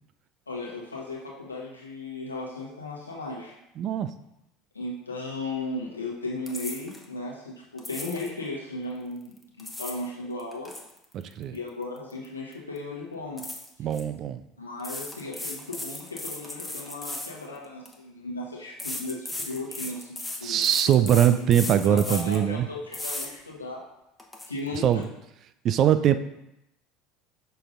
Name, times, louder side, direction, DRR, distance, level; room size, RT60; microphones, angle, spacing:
voice 1, 0.5-3.6 4.7-10.7 11.5-13.5 14.6-23.8 24.5-25.0 26.0-26.1, left 2 dB, 90° left, -3 dB, 1.3 m, -36 dB
voice 2, 3.8-4.1 11.1-11.6 13.8-14.4 20.4-22.7 24.8-25.0 25.6-26.2, right 10 dB, 45° right, 11 dB, 0.4 m, -22 dB
sound 1, 6.5-7.0 7.8-8.3 9.4-10.1 10.4-12.3 12.5-12.8 13.4-14.0 14.8-17.9 18.8-22.4 22.9-23.3 23.8-23.9 24.2-24.5, left 2 dB, 10° left, 1.1 m, -36 dB
6.6 x 6.2 x 2.5 m, 0.85 s
figure-of-eight pair, 70°, 0 cm